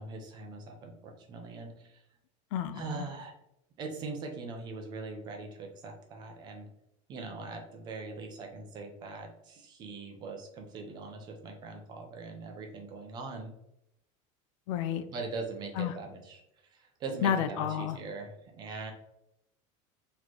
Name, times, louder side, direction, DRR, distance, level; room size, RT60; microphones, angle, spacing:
voice 1, 0.0-2.0 2.7-3.3 3.8-6.7 7.1-13.5 15.1-18.9, right 3 dB, 25° right, 3 dB, 0.6 m, -41 dB
voice 2, 2.5-2.8 14.7-15.0 15.8-15.9 17.2-18.0, left 9 dB, 80° left, 11 dB, 0.4 m, -30 dB
4.2 x 3.1 x 3.0 m, 0.81 s
cardioid pair, 175°, 16 cm